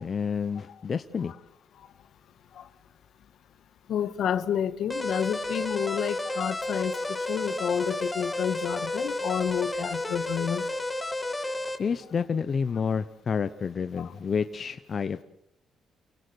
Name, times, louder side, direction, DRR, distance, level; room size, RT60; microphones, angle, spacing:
voice 1, 0.0-1.3 11.8-15.2, left 6 dB, 45° left, 0.9 m, -29 dB
voice 2, 3.9-7.0 7.3-10.6 14.0-14.1, left 9 dB, 70° left, 1.6 m, -29 dB
sound 1, 4.9-11.8, left 2 dB, 15° left, 2.8 m, -32 dB
29.5 x 17.0 x 8.1 m
cardioid pair, 90°, 0 cm